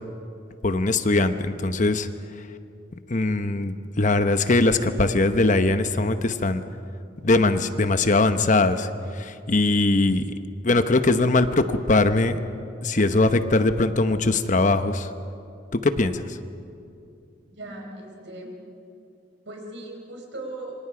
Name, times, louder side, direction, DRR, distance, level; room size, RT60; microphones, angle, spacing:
voice 1, 0.6-2.1 3.1-6.6 7.2-10.2 10.6-12.4 12.8-15.1 15.7-16.4, left 2 dB, 45° left, 10 dB, 0.9 m, -21 dB
voice 2, 17.5-18.5 19.4-20.7, right 2 dB, 80° right, 1 dB, 4.8 m, -38 dB
27.0 x 24.5 x 5.0 m, 2.6 s
head